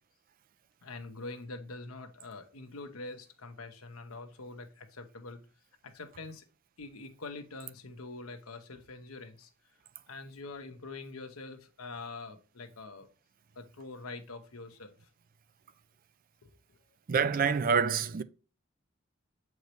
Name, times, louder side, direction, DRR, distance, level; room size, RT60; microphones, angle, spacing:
voice 1, 0.8-5.4 5.8-6.4 6.8-9.5 10.1-13.1 13.5-15.1 16.4-16.9, left 3 dB, 85° left, 1.0 m, -45 dB
voice 2, 17.1-18.2, right 6 dB, 40° right, 0.4 m, -26 dB
7.9 x 4.7 x 3.2 m
head